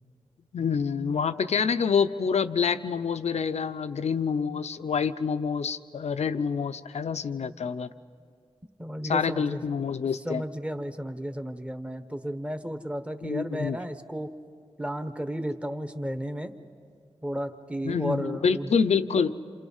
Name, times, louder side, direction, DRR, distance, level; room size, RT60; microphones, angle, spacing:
voice 1, 0.5-7.9 9.1-10.4 13.2-13.8 17.8-19.4, left 6 dB, 85° left, 10 dB, 0.7 m, -27 dB
voice 2, 8.8-9.6 10.2-14.3 14.8-16.5 17.2-18.8, equal, 10° right, 8 dB, 1.3 m, -33 dB
30.0 x 27.5 x 5.6 m, 2.1 s
wide cardioid pair, 95°, 11 cm